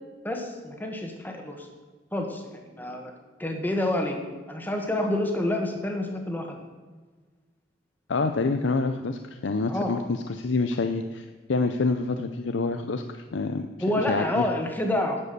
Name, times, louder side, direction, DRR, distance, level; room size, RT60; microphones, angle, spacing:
voice 1, 0.2-1.7 2.1-3.1 3.4-4.2 4.5-6.6 9.7-9.9 13.8-15.2, left 1 dB, 10° left, 3 dB, 1.5 m, -28 dB
voice 2, 8.1-13.7 14.0-14.5, left 3 dB, 80° left, 7 dB, 0.6 m, -27 dB
10.5 x 7.5 x 6.8 m, 1.4 s
head